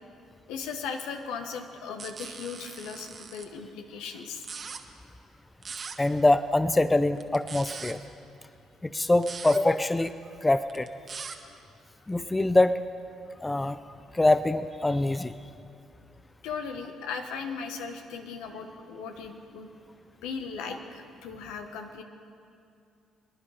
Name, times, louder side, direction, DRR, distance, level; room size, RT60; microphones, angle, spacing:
voice 1, 0.5-4.5 16.4-19.7 20.2-22.0, left 5 dB, 80° left, 5 dB, 1.3 m, -37 dB
sound 1, 2.0-3.4 4.3-4.8 5.6-6.0 7.2-7.9 9.1-9.6 10.7-11.4, right 5 dB, 45° right, 1.2 m, -40 dB
voice 2, 6.0-8.0 8.9-10.1 10.4-10.9 12.1-12.8 13.4-13.8 14.1-15.3, left 2 dB, 15° left, 13 dB, 0.5 m, -24 dB
24.5 x 10.5 x 5.0 m, 2.5 s
supercardioid pair, 60°, 0 cm